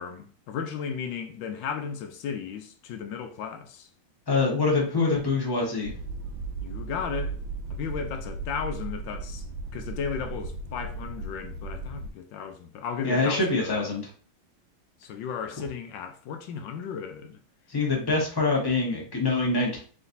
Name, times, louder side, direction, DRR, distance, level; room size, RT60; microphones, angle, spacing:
voice 1, 0.0-3.9 6.6-7.4 7.7-9.4 9.7-13.9 15.0-17.4, left 7 dB, 75° left, 1.2 m, -35 dB
voice 2, 4.3-5.9 13.0-14.1 17.7-19.8, left 3 dB, 20° left, 0.7 m, -25 dB
sound 1, 5.8-12.1, right 3 dB, 75° right, 1.4 m, -36 dB
4.1 x 3.9 x 2.6 m
omnidirectional pair, 2.2 m